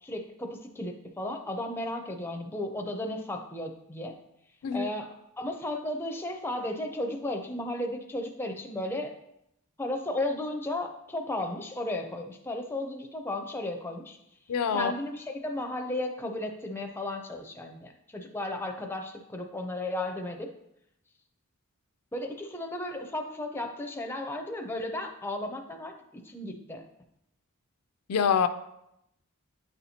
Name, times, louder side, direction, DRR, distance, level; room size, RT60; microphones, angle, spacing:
voice 1, 0.0-4.1 4.7-9.2 9.8-14.2 14.7-20.5 22.1-26.8, left 1 dB, 10° left, 4 dB, 0.4 m, -34 dB
voice 2, 14.5-14.9 28.1-28.5, left 7 dB, 80° left, 10 dB, 0.4 m, -25 dB
9.0 x 4.2 x 2.8 m, 0.81 s
head